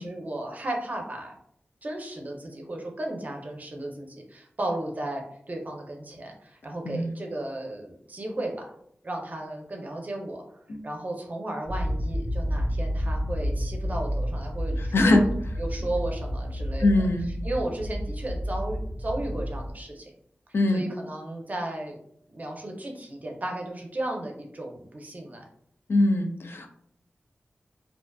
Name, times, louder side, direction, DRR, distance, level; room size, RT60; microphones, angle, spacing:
voice 1, 0.0-1.3 1.8-8.5 9.0-10.4 10.8-15.3 15.6-17.1 17.4-20.1 20.7-22.0 22.3-25.5, right 1 dB, 40° right, 1 dB, 0.5 m, -34 dB
sound 1, 11.7-19.7, equal, 5° right, 1.0 m, -30 dB
voice 2, 14.8-15.2 16.8-17.3 20.5-20.9 25.9-26.7, left 2 dB, 70° left, 5 dB, 0.3 m, -22 dB
2.4 x 2.3 x 2.3 m, 0.68 s
wide cardioid pair, 80°, 4 cm